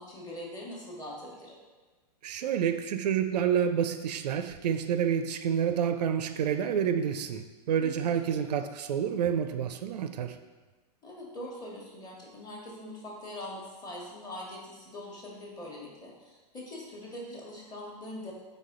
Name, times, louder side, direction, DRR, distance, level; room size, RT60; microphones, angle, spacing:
voice 1, 0.0-1.6 7.8-7.9 8.2-8.4 11.0-18.3, left 1 dB, 20° left, -3 dB, 1.1 m, -42 dB
voice 2, 2.2-10.4, right 8 dB, 80° right, 9 dB, 0.4 m, -28 dB
4.0 x 3.5 x 3.7 m, 1.2 s
hypercardioid pair, 125°, 21 cm